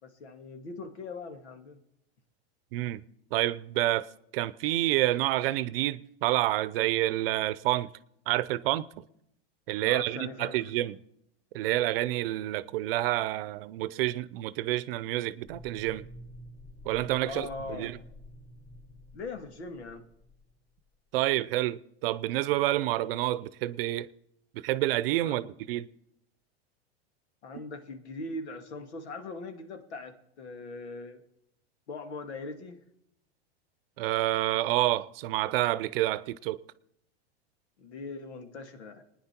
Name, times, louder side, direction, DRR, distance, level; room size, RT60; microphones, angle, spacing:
voice 1, 0.0-1.8 9.8-10.9 17.2-17.9 19.1-20.0 25.2-25.5 27.4-31.2 31.9-32.8 37.8-39.0, left 3 dB, 90° left, 2.3 m, -41 dB
voice 2, 2.7-3.0 3.3-4.1 4.3-7.9 8.3-8.9 9.7-11.0 11.5-16.1 16.8-18.0 21.1-24.1 24.5-25.9 34.0-36.6, right 15 dB, 60° right, 0.7 m, -28 dB
sound 1, 15.5-20.9, equal, 50° left, 3.5 m, -49 dB
27.5 x 10.0 x 4.4 m
supercardioid pair, 135°, 32 cm